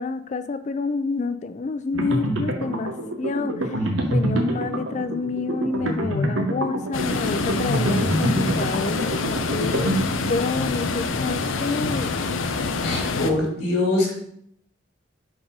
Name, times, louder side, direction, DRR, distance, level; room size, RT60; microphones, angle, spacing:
voice 1, 0.0-2.9 3.2-10.0 10.3-12.1, left 4 dB, 35° left, 11 dB, 0.4 m, -28 dB
sound 1, 1.9-10.5, right 1 dB, 90° right, 0.9 m, -26 dB
sound 2, 6.9-13.3, left 4 dB, 90° left, 0.6 m, -26 dB
voice 2, 12.8-14.1, left 2 dB, 65° left, -3 dB, 1.9 m, -23 dB
4.8 x 3.9 x 5.3 m, 0.70 s
head